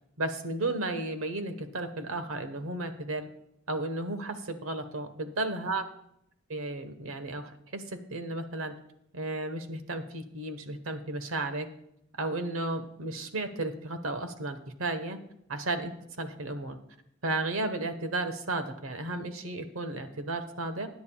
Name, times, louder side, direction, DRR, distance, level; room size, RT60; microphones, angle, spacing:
voice 1, 0.2-3.3 3.7-5.8 6.5-8.8 9.1-11.7 12.2-15.2 15.5-16.8 17.2-20.9, right 2 dB, 80° right, 8 dB, 1.2 m, -33 dB
20.0 x 9.5 x 2.3 m, 0.75 s
head